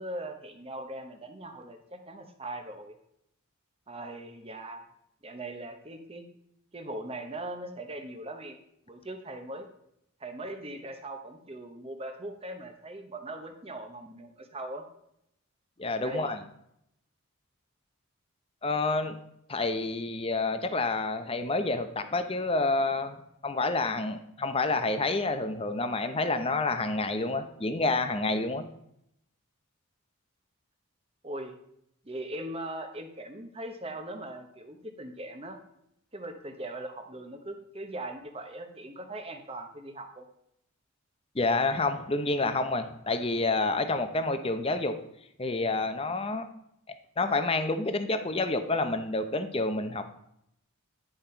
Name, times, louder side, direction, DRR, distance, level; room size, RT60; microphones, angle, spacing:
voice 1, 0.0-2.9 3.9-4.8 5.2-6.3 6.7-8.6 8.9-9.7 10.2-14.8 16.0-16.4 31.2-31.6 32.0-35.6 36.1-40.2, right 1 dB, 25° right, 5 dB, 0.9 m, -40 dB
voice 2, 15.8-16.4 18.6-19.2 19.5-23.2 23.4-28.6 41.3-44.9 45.4-46.5 47.2-50.0, left 3 dB, 25° left, 9 dB, 0.6 m, -28 dB
10.0 x 5.5 x 4.4 m, 0.76 s
head